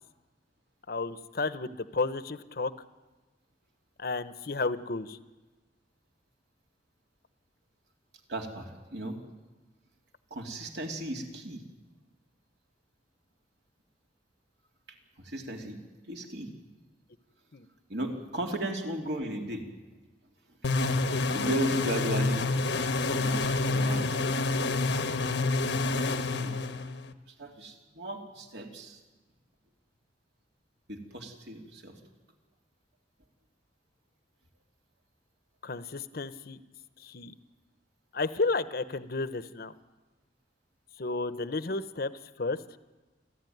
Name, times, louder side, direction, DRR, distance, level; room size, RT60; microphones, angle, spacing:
voice 1, 0.9-2.7 4.0-5.2 17.5-17.7 35.6-36.6 37.0-37.3 38.1-39.7 41.0-42.1 42.4-42.6, left 3 dB, 60° left, 13 dB, 0.9 m, -32 dB
voice 2, 8.3-9.2 10.3-11.6 15.2-15.8 16.1-16.5 17.9-19.6 20.6-20.7 21.3-22.5 22.7-24.3 24.7-24.8 26.3-26.6 27.3-29.0 30.9-32.0, right 1 dB, 70° right, 2 dB, 3.1 m, -36 dB
sound 1, 20.6-27.1, left 3 dB, 85° left, 1.1 m, -28 dB
28.5 x 13.0 x 9.4 m, 1.2 s
head